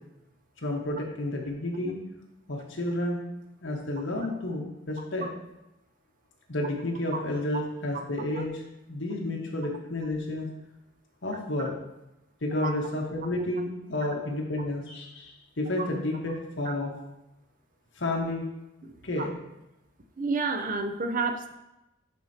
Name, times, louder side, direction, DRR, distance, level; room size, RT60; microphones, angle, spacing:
voice 1, 0.6-2.0 2.5-3.2 3.6-5.3 6.5-8.6 8.9-10.5 11.2-11.7 12.4-16.9 18.0-18.4 19.0-19.4, left 1 dB, 75° left, 0 dB, 1.4 m, -31 dB
voice 2, 20.2-21.5, right 3 dB, 45° right, 6 dB, 0.6 m, -29 dB
11.5 x 4.5 x 2.9 m, 0.93 s
head